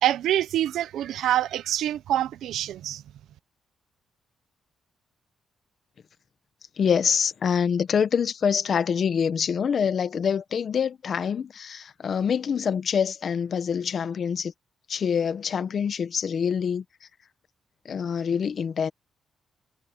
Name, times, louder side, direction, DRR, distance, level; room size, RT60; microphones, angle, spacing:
voice 1, 0.0-3.0, right 12 dB, 90° right, 0.8 m, -25 dB
voice 2, 6.8-14.5 14.9-16.8 17.8-18.9, left 7 dB, 55° left, 1.2 m, -25 dB
cardioid pair, 110°, 0 cm